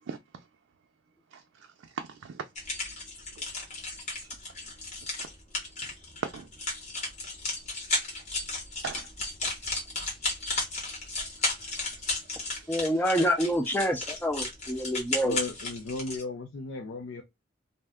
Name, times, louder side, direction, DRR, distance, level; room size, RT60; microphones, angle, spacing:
voice 1, 1.9-2.4 6.2-6.5 8.8-9.1 11.2-12.7, right 6 dB, 85° right, 0.4 m, -40 dB
sound 1, 2.6-16.2, left 2 dB, 35° left, 1.2 m, -34 dB
voice 2, 12.7-15.4, equal, 10° left, 0.5 m, -27 dB
voice 3, 15.2-17.2, left 2 dB, 80° left, 0.5 m, -35 dB
2.6 x 2.2 x 3.5 m
head